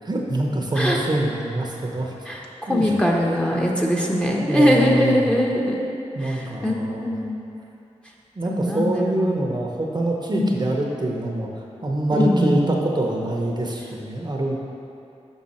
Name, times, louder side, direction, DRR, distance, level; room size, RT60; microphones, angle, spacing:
voice 1, 0.0-2.1 2.7-2.9 4.4-5.4 6.1-7.1 8.4-11.5 11.8-14.6, right 1 dB, 35° right, -1 dB, 0.8 m, -24 dB
voice 2, 2.2-5.8 6.2-7.4 8.5-9.4 10.3-10.6 12.1-12.6, equal, 10° left, -2 dB, 0.9 m, -22 dB
6.4 x 5.4 x 4.2 m, 2.7 s
cardioid pair, 60°, 12 cm